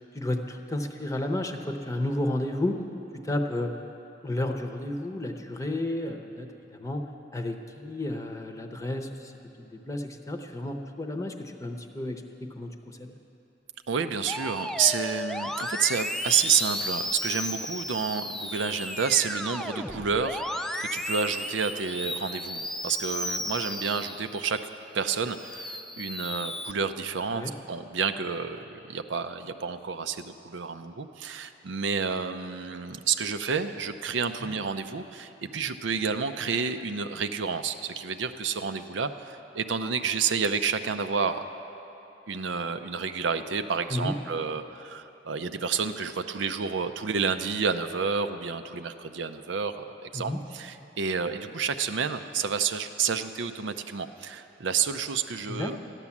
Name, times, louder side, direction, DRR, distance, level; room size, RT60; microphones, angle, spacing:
voice 1, 0.1-2.8 3.1-3.7 4.2-7.0 7.3-9.3 9.6-13.1 27.3-27.5 43.9-44.1 50.1-50.4 55.5-55.8, left 1 dB, 20° left, 5 dB, 0.8 m, -32 dB
voice 2, 13.9-24.6 24.9-41.4 42.3-55.8, right 6 dB, 85° right, 8 dB, 0.6 m, -30 dB
Musical instrument, 14.3-24.7 25.2-26.7, left 1 dB, ahead, 0.3 m, -34 dB
13.5 x 11.0 x 7.2 m, 2.9 s
head